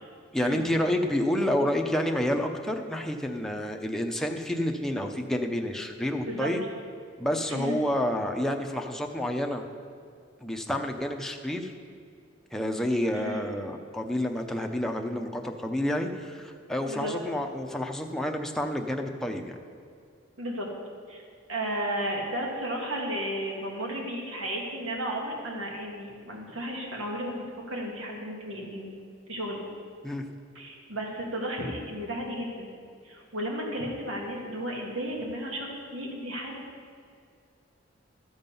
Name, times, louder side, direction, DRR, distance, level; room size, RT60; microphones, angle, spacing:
voice 1, 0.3-6.6 7.2-9.6 10.4-11.7 12.5-19.5 30.0-30.3, left 1 dB, ahead, 2 dB, 0.7 m, -29 dB
voice 2, 6.2-6.5 7.5-7.8 13.1-13.4 16.9-17.1 20.4-20.7 21.1-21.2 21.5-27.3 27.7-28.9 29.3-29.6 30.6-32.7 33.0-36.6, right 1 dB, 85° right, -1 dB, 2.1 m, -33 dB
13.0 x 7.3 x 5.4 m, 2.3 s
head